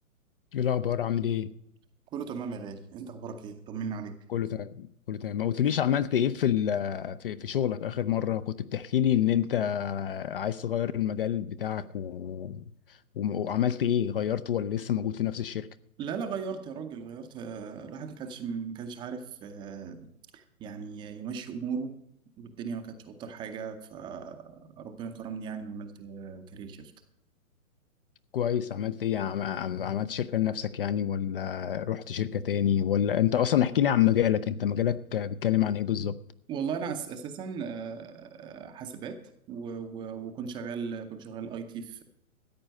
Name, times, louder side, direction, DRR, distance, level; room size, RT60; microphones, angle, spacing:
voice 1, 0.5-1.5 4.3-15.7 28.3-36.2, left 10 dB, 40° left, 0.5 m, -28 dB
voice 2, 2.1-4.2 16.0-20.1 20.3-21.9 22.4-26.9 36.5-39.2 39.5-42.0, right 6 dB, 10° right, 0.6 m, -37 dB
14.0 x 8.8 x 6.3 m
hypercardioid pair, 135°, 43 cm